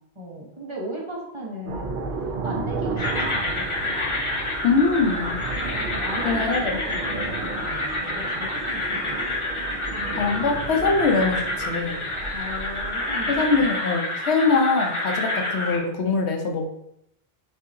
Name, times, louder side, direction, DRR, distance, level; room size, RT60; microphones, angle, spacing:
voice 1, 0.1-2.0 2.4-4.1 5.7-9.2 12.3-13.7, equal, 30° right, -3 dB, 1.0 m, -37 dB
sound 1, 1.7-13.7, right 4 dB, 55° right, 0.7 m, -33 dB
sound 2, 3.0-15.8, left 2 dB, 35° left, 0.7 m, -28 dB
voice 2, 4.6-5.4 6.2-6.8 10.1-12.0 13.3-16.7, left 4 dB, 90° left, 3 dB, 1.0 m, -23 dB
5.9 x 2.8 x 2.6 m, 0.76 s
omnidirectional pair, 1.1 m